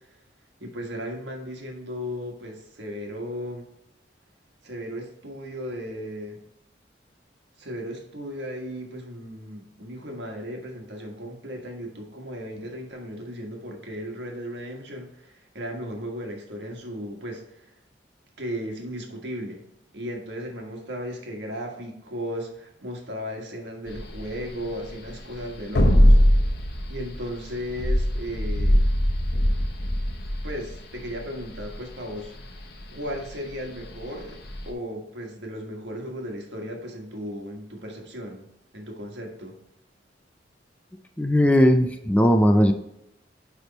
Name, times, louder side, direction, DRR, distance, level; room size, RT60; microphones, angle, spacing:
voice 1, 0.6-3.6 4.6-6.4 7.6-17.7 18.4-19.6 19.9-26.2 26.9-28.8 30.4-32.6 32.9-39.6, equal, 65° right, 1 dB, 1.6 m, -36 dB
sound 1, 23.9-34.7, equal, 60° left, 1.0 m, -22 dB
voice 2, 41.2-42.7, equal, 10° left, 7 dB, 0.4 m, -18 dB
9.3 x 3.5 x 4.0 m, 0.84 s
head